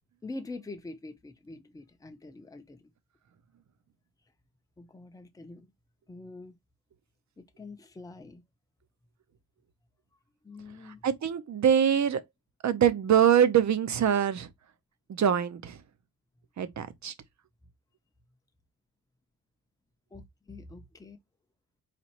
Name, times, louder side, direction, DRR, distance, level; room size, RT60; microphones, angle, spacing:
voice 1, 0.2-2.8 4.8-5.7 6.1-6.6 7.4-8.4 10.4-11.0 16.8-16.9 20.1-21.2, left 2 dB, 10° left, 0.6 m, -45 dB
voice 2, 11.0-12.2 12.6-14.5 15.1-15.8 16.6-17.1, right 9 dB, 50° right, 0.7 m, -24 dB
4.2 x 3.0 x 2.9 m
wide cardioid pair, 130°, 38 cm